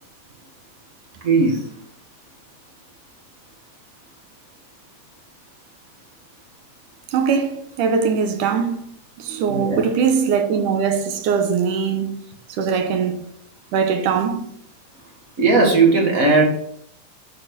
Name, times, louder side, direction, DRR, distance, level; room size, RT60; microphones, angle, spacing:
voice 1, 1.2-1.6 9.5-9.8 15.4-16.4, right 3 dB, 35° right, 1.7 m, -16 dB
voice 2, 7.1-8.8 9.2-12.2 12.5-13.3 13.7-14.4, right 6 dB, 80° right, 2.5 m, -21 dB
8.8 x 4.4 x 6.0 m
omnidirectional pair, 3.6 m